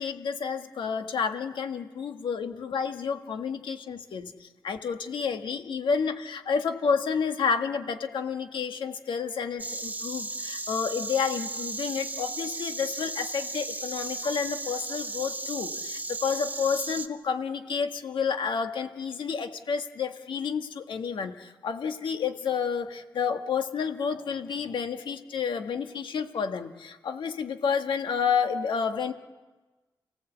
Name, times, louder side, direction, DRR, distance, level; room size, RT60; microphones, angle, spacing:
voice 1, 0.0-29.1, left 6 dB, 85° left, 6 dB, 1.6 m, -30 dB
Insect, 9.6-17.1, right 2 dB, 20° right, 1.1 m, -35 dB
29.5 x 17.5 x 8.2 m, 1.2 s
wide cardioid pair, 115°, 8 cm